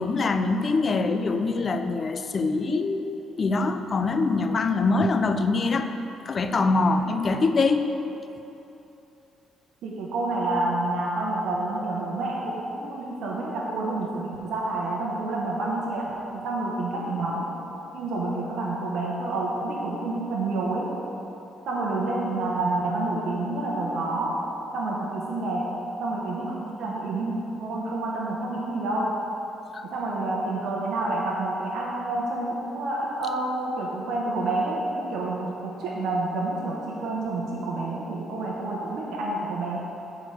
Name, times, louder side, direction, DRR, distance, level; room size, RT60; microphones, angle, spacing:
voice 1, 0.0-5.9 6.3-7.9 29.7-29.8, left 3 dB, 40° left, 8 dB, 0.5 m, -24 dB
voice 2, 9.8-17.5 17.9-20.9 21.7-24.4 24.7-25.7 26.0-29.2 29.9-39.8, right 2 dB, 80° right, -4 dB, 1.0 m, -28 dB
7.8 x 4.7 x 6.4 m, 3.0 s
cardioid pair, 90°, 0 cm